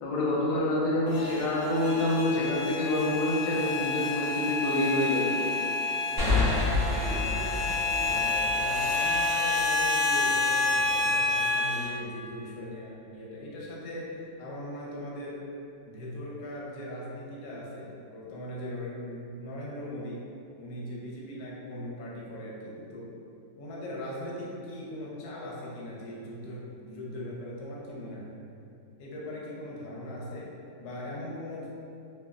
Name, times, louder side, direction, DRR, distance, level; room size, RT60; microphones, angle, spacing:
voice 1, 0.0-5.4, left 1 dB, 90° left, -5 dB, 1.3 m, -27 dB
sound 1, 1.1-11.9, left 3 dB, 50° left, 0.7 m, -29 dB
voice 2, 6.1-15.5 15.9-20.3 20.6-23.1 23.6-28.4 29.0-30.5 30.8-31.7, left 1 dB, 70° left, -4 dB, 1.0 m, -40 dB
sound 2, 6.2-9.7, left 3 dB, 60° right, 0.5 m, -29 dB
3.0 x 2.2 x 2.3 m, 2.6 s
omnidirectional pair, 1.9 m